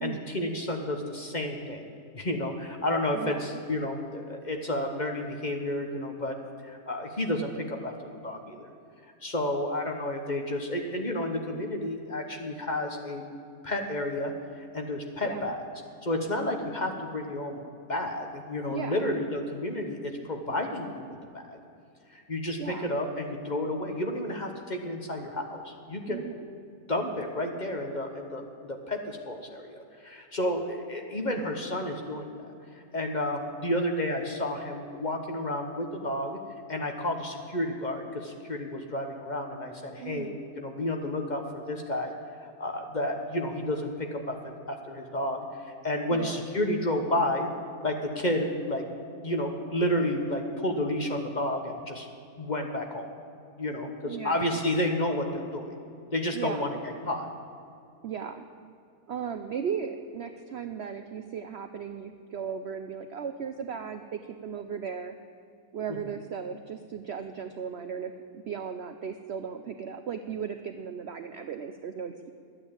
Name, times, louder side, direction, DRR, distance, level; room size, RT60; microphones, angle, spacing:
voice 1, 0.0-1.9 2.1-6.4 6.6-8.7 9.2-13.3 13.6-15.6 16.0-17.6 17.9-21.6 22.1-26.2 26.9-32.3 32.7-36.4 36.7-42.1 42.4-47.5 47.8-48.8 49.2-52.1 52.4-53.1 53.6-55.7 56.1-57.3 65.9-66.0, left 1 dB, 30° left, 3 dB, 1.0 m, -31 dB
voice 2, 3.1-3.6 15.2-15.5 18.7-19.0 22.6-22.9 26.1-26.5 40.0-40.4 46.2-46.5 54.0-54.5 56.3-56.8 58.0-58.5 59.1-65.1 65.7-72.3, right 7 dB, 65° right, 8 dB, 0.6 m, -36 dB
12.0 x 8.8 x 8.6 m, 2.4 s
omnidirectional pair, 1.7 m